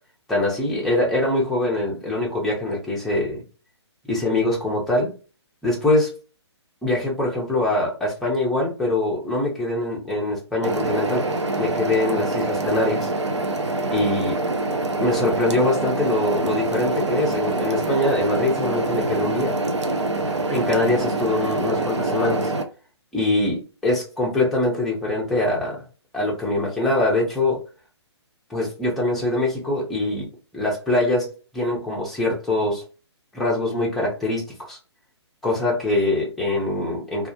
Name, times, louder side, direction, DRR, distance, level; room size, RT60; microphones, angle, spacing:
voice 1, 0.3-3.4 4.1-5.1 5.6-6.2 6.8-11.3 11.6-13.1 13.9-14.4 15.0-19.6 20.5-22.5 23.1-25.8 26.1-27.6 28.5-30.3 30.5-32.8 33.3-34.8 35.4-37.3, left 2 dB, ahead, -4 dB, 0.4 m, -23 dB
sound 1, 10.6-22.6, right 2 dB, 85° right, 0.5 m, -25 dB
2.3 x 2.0 x 2.6 m, 0.35 s
figure-of-eight pair, 135°, 15 cm